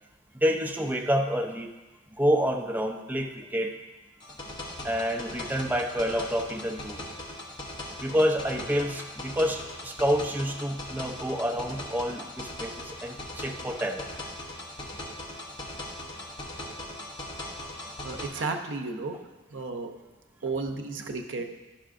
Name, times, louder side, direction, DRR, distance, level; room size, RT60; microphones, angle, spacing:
voice 1, 0.3-1.7 2.1-3.7 4.8-7.0 8.0-14.1, equal, 10° right, 2 dB, 0.5 m, -28 dB
sound 1, 4.2-18.3, left 1 dB, 25° left, 0.9 m, -40 dB
voice 2, 18.0-19.9 20.4-21.4, right 3 dB, 70° right, 5 dB, 0.6 m, -33 dB
10.0 x 5.6 x 2.5 m, 1.1 s
head